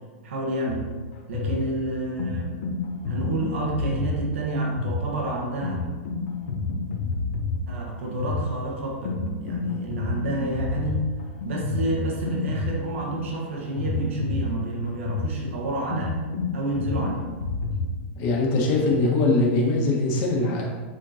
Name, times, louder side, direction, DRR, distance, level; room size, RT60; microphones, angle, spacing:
voice 1, 0.2-0.9 1.3-2.6 3.1-5.8 7.7-11.1 11.4-16.2 16.5-17.2, right 2 dB, 80° right, -2 dB, 1.5 m, -29 dB
sound 1, 0.7-17.9, left 3 dB, 90° left, 1.0 m, -30 dB
voice 2, 18.2-20.7, left 2 dB, 40° left, -2 dB, 1.6 m, -22 dB
8.5 x 4.3 x 2.9 m, 1.4 s
supercardioid pair, 150°, 7 cm